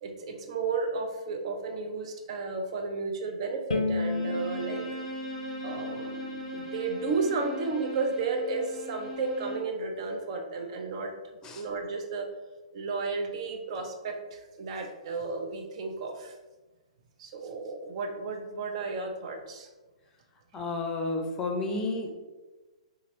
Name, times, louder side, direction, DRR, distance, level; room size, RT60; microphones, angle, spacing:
voice 1, 0.0-4.9 5.6-11.1 11.5-12.3 12.7-16.3 17.2-19.7, right 4 dB, 55° right, 4 dB, 0.6 m, -33 dB
Bowed string instrument, 3.7-6.9, left 3 dB, 85° left, 0.3 m, -34 dB
Bowed string instrument 2, 4.0-9.8, equal, 5° right, 1.1 m, -39 dB
voice 2, 20.5-22.1, left 2 dB, 20° left, 3 dB, 0.6 m, -31 dB
3.7 x 2.8 x 3.0 m, 1.2 s
hypercardioid pair, 135°, 4 cm